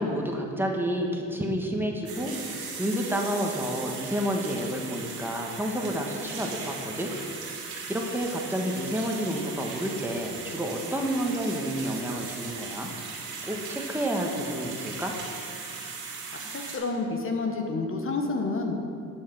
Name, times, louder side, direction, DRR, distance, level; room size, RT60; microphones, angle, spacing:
voice 1, 0.0-7.1 7.9-12.9 13.4-15.1, equal, 5° right, 0 dB, 1.5 m, -30 dB
sound 1, 2.1-16.8, right 4 dB, 80° right, 2.5 m, -38 dB
voice 2, 16.3-18.8, left 3 dB, 45° left, 3 dB, 1.4 m, -29 dB
11.5 x 6.6 x 6.2 m, 2.4 s
cardioid pair, 90°, 30 cm